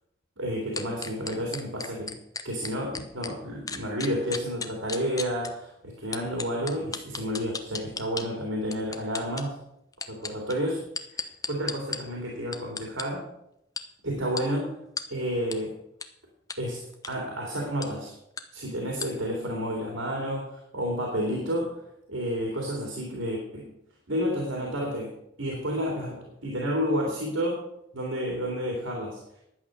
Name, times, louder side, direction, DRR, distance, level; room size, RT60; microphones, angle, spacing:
voice 1, 0.4-2.2 2.4-9.6 10.1-10.8 11.1-13.2 14.0-14.7 15.1-15.7 16.6-16.8 17.1-18.1 18.5-21.8 22.1-23.7 24.1-25.1 25.4-27.6 27.9-29.2, equal, 90° right, 0 dB, 2.8 m, -30 dB
sound 1, 0.8-3.3 3.7-5.5 6.1-8.2 8.7-9.4 9.9-12.0 12.5-13.0 13.8-13.9 14.4-14.5 15.0-15.1 15.5-15.6 16.0-16.1 16.5-16.6 16.9-17.1 17.8-17.9 18.4-18.5 19.0-19.1, left 5 dB, 20° left, 0.8 m, -34 dB
11.0 x 8.3 x 6.5 m, 0.80 s
head